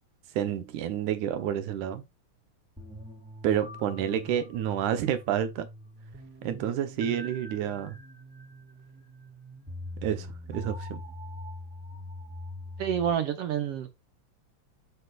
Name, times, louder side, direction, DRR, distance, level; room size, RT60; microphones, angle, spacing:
voice 1, 0.4-2.0 3.4-5.7 6.4-8.0 10.0-11.0, right 10 dB, 85° right, 2.4 m, -29 dB
sound 1, 2.8-13.1, left 1 dB, 10° right, 0.5 m, -43 dB
voice 2, 12.8-13.9, right 9 dB, 65° right, 1.7 m, -28 dB
13.0 x 4.7 x 2.4 m
omnidirectional pair, 3.4 m